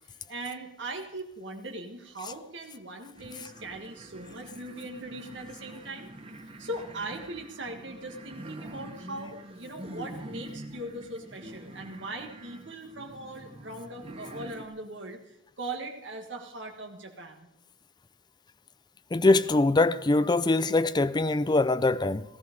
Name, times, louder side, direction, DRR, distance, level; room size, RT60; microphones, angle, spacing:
voice 1, 0.3-6.1 6.6-17.5, right 2 dB, 65° right, 1.5 m, -40 dB
sound 1, 3.2-14.7, right 1 dB, 30° right, 1.2 m, -45 dB
voice 2, 19.1-22.2, left 2 dB, 20° left, 0.5 m, -23 dB
15.0 x 14.0 x 5.2 m
head